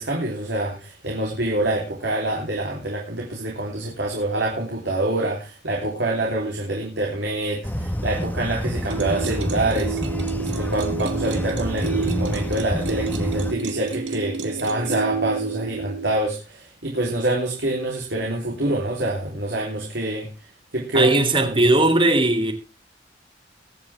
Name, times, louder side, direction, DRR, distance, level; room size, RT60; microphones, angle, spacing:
voice 1, 0.0-10.0 10.4-20.3 20.7-21.7, right 1 dB, 70° right, 3.7 m, -26 dB
sound 1, 7.6-13.5, equal, 10° left, 1.5 m, -28 dB
sound 2, 8.9-16.1, right 4 dB, 90° right, 2.4 m, -30 dB
voice 2, 20.9-22.5, right 2 dB, 30° right, 2.5 m, -18 dB
22.0 x 8.9 x 3.5 m
head